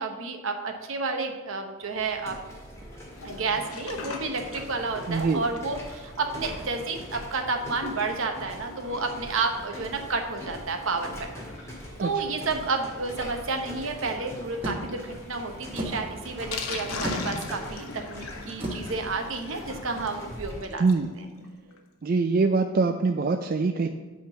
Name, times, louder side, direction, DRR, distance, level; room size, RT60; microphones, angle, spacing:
voice 1, 0.0-2.4 3.2-11.3 12.0-20.9, right 3 dB, 70° right, 4 dB, 1.0 m, -31 dB
sound 1, 1.8-20.7, equal, 15° left, 1.9 m, -42 dB
Sink (filling or washing), 3.0-21.1 21.4-21.5 21.7-21.8 22.2-22.3, left 4 dB, 85° left, 1.0 m, -42 dB
voice 2, 5.1-5.4 12.0-12.1 20.8-21.1 22.0-23.9, right 4 dB, 45° right, 6 dB, 0.3 m, -23 dB
sound 2, 14.6-20.2, right 1 dB, 25° right, 1.2 m, -37 dB
8.6 x 3.8 x 6.7 m, 1.4 s
head